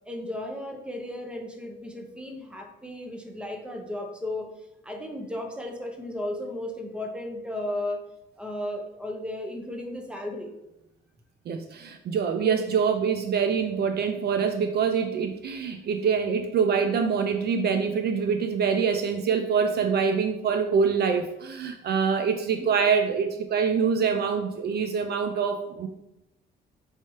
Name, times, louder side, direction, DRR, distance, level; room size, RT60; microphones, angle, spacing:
voice 1, 0.1-4.5 4.8-8.0 8.4-10.5 22.6-22.7, left 1 dB, 5° right, 3 dB, 0.7 m, -34 dB
voice 2, 11.5-25.9, right 6 dB, 55° right, 7 dB, 0.4 m, -25 dB
4.6 x 2.8 x 3.1 m, 0.91 s
cardioid pair, 90°, 20 cm